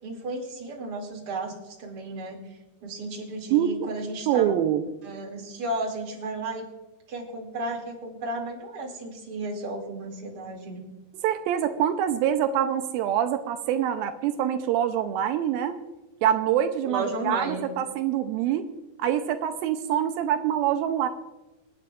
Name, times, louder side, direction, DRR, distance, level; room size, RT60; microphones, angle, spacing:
voice 1, 0.0-4.5 5.0-6.7 7.1-10.8 16.9-17.7, right 2 dB, 35° right, 0 dB, 2.4 m, -34 dB
voice 2, 4.3-4.8 11.2-15.8 16.2-18.7 19.0-21.1, right 10 dB, 85° right, 8 dB, 2.4 m, -25 dB
27.0 x 9.3 x 2.4 m, 1.0 s
omnidirectional pair, 4.2 m